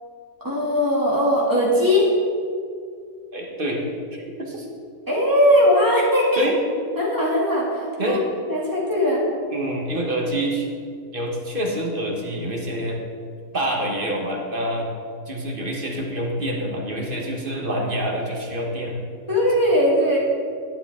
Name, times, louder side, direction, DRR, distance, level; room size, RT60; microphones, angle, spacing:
voice 1, 0.4-2.1 5.1-6.5 7.0-8.2 8.4-9.2 19.3-20.2, equal, 10° right, -6 dB, 2.4 m, -19 dB
voice 2, 3.3-3.8 4.3-4.7 6.4-6.6 8.0-8.2 9.5-10.7 11.1-13.0 13.5-14.9 15.3-19.0 19.9-20.0, right 1 dB, 35° right, -1 dB, 1.3 m, -26 dB
11.5 x 9.6 x 3.6 m, 2.2 s
omnidirectional pair, 1.8 m